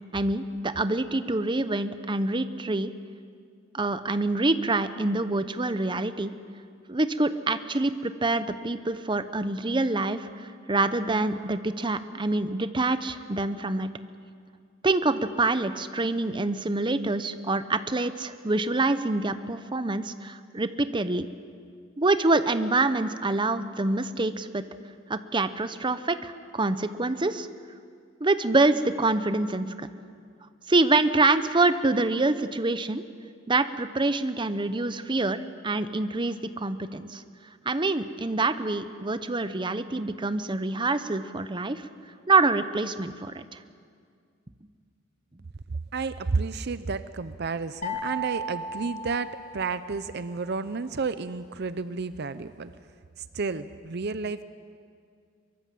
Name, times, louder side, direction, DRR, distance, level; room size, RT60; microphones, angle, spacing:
voice 1, 0.1-2.9 3.7-6.3 6.9-13.9 14.8-21.3 22.0-24.6 25.1-27.5 28.2-29.9 30.7-33.0 33.5-37.2 37.6-41.8 42.3-43.6, right 2 dB, 25° right, 11 dB, 0.8 m, -26 dB
voice 2, 45.7-52.7 53.2-54.4, right 4 dB, 55° right, 13 dB, 0.6 m, -31 dB
sound 1, 47.8-50.0, right 1 dB, 40° left, 2.2 m, -35 dB
23.0 x 23.0 x 7.7 m, 2.2 s
head